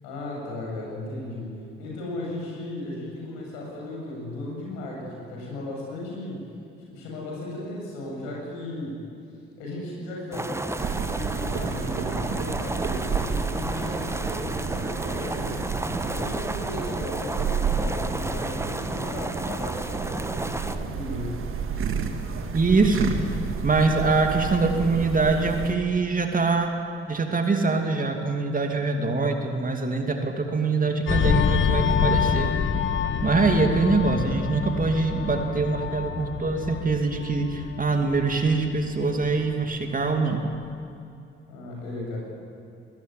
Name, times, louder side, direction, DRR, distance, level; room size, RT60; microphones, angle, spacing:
voice 1, 0.0-6.5 6.8-9.0 9.6-10.5 11.0-15.6 16.1-21.5 41.5-42.2, left 1 dB, 65° left, -2 dB, 8.0 m, -36 dB
sound 1, 10.3-20.8, right 2 dB, 10° right, 1.3 m, -32 dB
sound 2, 10.8-25.7, right 6 dB, 45° right, 2.1 m, -31 dB
voice 2, 22.5-23.1 23.6-26.8 27.1-32.5 33.2-40.5, right 3 dB, 30° right, 4 dB, 2.7 m, -23 dB
sound 3, 31.1-40.1 40.4-40.7, left 7 dB, 40° left, 1.5 m, -27 dB
22.0 x 20.0 x 9.2 m, 2.5 s
figure-of-eight pair, 45°, 30 cm